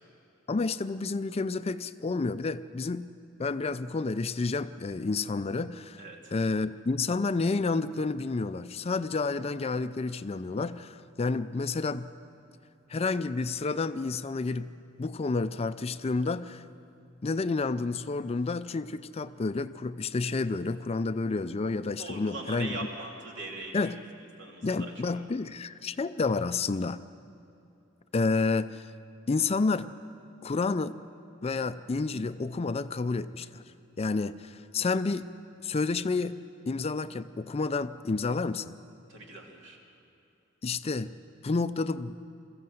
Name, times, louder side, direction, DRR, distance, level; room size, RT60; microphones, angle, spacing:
voice 1, 0.5-3.1 3.4-6.0 6.3-12.1 12.9-14.7 15.0-16.6 17.2-22.8 23.7-24.0 24.6-27.0 28.1-28.9 29.3-29.9 30.4-30.9 31.4-33.6 34.0-35.3 35.6-38.8 40.6-41.1 41.4-42.2, left 3 dB, 30° left, 13 dB, 0.4 m, -30 dB
voice 2, 6.0-6.3 22.0-23.9 24.4-24.9 39.1-39.8, right 2 dB, 65° right, 0 dB, 3.2 m, -40 dB
22.5 x 15.0 x 7.7 m, 2.8 s
head